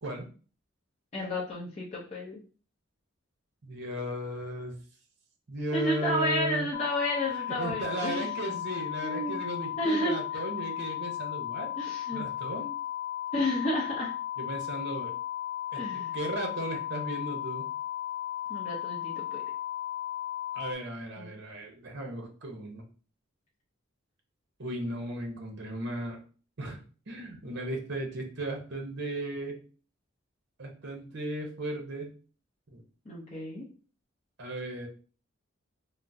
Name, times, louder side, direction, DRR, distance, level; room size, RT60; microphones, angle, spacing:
voice 1, 1.1-2.4 5.7-8.6 9.0-9.4 9.8-10.1 11.8-12.2 13.3-14.1 15.7-16.2 18.5-19.4 21.2-21.3 33.1-33.6, left 1 dB, 30° left, -6 dB, 0.6 m, -31 dB
voice 2, 3.6-4.7 5.5-6.7 7.6-11.7 12.1-12.7 14.4-15.1 15.7-17.7 20.5-22.8 24.6-26.2 26.6-26.8 27.1-29.6 30.6-32.1 32.7-32.8 34.4-34.9, right 1 dB, 55° right, 2 dB, 0.7 m, -36 dB
sound 1, 6.7-20.7, left 12 dB, 85° left, 0.5 m, -35 dB
3.5 x 2.0 x 2.6 m, 0.39 s
head